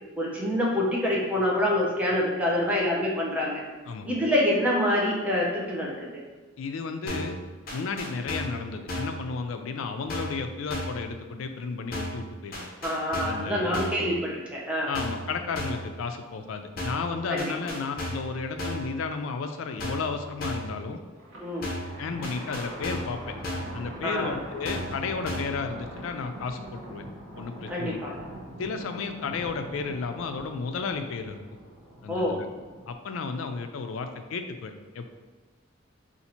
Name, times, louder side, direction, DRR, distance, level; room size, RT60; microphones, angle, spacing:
voice 1, 0.2-3.6 4.0-6.2 12.8-14.9 17.3-17.6 21.4-21.7 24.0-24.3 27.7-28.1 32.1-32.4, left 1 dB, 5° right, -5 dB, 0.6 m, -26 dB
voice 2, 6.6-7.4 7.7-12.7 13.2-13.8 14.9-21.0 22.0-23.3 23.7-27.0 27.4-28.0 28.6-31.4 32.0-32.5 32.9-35.1, left 4 dB, 80° left, 7 dB, 0.4 m, -33 dB
sound 1, 7.1-7.4 7.7-8.6 8.9-9.2 10.1-10.4 10.7-11.0 11.9-12.2 12.5-13.5 13.7-14.1 14.9-15.3 15.6-15.9 16.8-17.1 17.4-18.3 18.6-18.9 19.8-20.1 20.4-20.7 21.6-21.9 22.2-23.2 23.4-23.8 24.6-25.0 25.3-25.6, left 1 dB, 45° left, 0.7 m, -34 dB
Thunder, 21.2-32.9, right 1 dB, 70° right, 0.7 m, -42 dB
2.7 x 2.5 x 4.2 m, 1.3 s
head